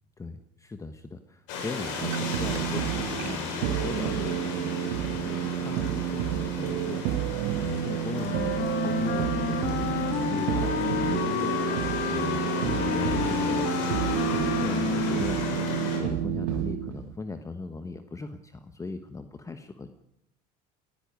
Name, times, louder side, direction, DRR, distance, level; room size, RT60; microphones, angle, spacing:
voice 1, 0.2-7.2 7.6-11.7 12.1-15.4 15.9-19.9, left 3 dB, 15° left, 9 dB, 1.2 m, -39 dB
sound 1, 1.5-16.0, left 3 dB, 70° left, 7.3 m, -35 dB
sound 2, 2.0-17.1, right 12 dB, 75° right, 1.7 m, -30 dB
Wind instrument woodwind instrument, 8.1-16.3, left 9 dB, 50° left, 2.6 m, -31 dB
17.5 x 16.0 x 9.4 m, 0.82 s
supercardioid pair, 115°, 20 cm